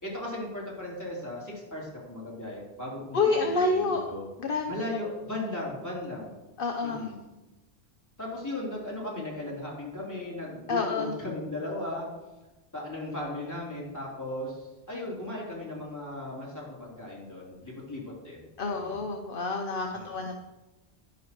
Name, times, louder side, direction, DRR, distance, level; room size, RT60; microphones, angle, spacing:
voice 1, 0.0-4.3 4.7-6.3 6.8-7.2 8.2-12.1 12.7-18.4 18.6-19.0 19.9-20.3, left 1 dB, 15° left, -6 dB, 3.3 m, -37 dB
voice 2, 3.1-4.0 4.4-4.7 6.6-7.1 10.7-11.1 18.6-20.3, left 3 dB, 55° left, 3 dB, 0.9 m, -28 dB
11.0 x 10.5 x 3.0 m, 1.1 s
omnidirectional pair, 1.1 m